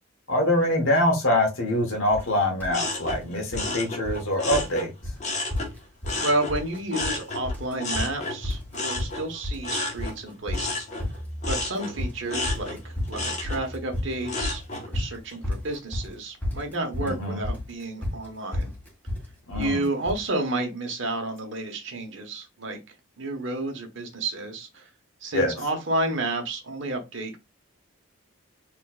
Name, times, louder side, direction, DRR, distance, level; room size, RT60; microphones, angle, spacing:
voice 1, 0.3-4.9 17.0-17.4 19.5-19.8 25.3-25.5, left 1 dB, 75° left, 1.3 m, -24 dB
sound 1, 2.1-2.3 2.6-3.2 3.5-4.3 4.5-4.8 5.0-5.2 5.5-6.2 6.5-7.2 7.5-20.3, left 1 dB, 10° left, 2.1 m, -32 dB
sound 2, 2.7-5.7 6.0-14.9 15.3-15.8, left 2 dB, 35° left, 1.2 m, -32 dB
voice 2, 6.2-10.9 11.5-18.7 19.5-22.8 23.2-24.9 25.2-27.4, right 2 dB, 60° right, 1.2 m, -31 dB
4.4 x 3.2 x 2.4 m
head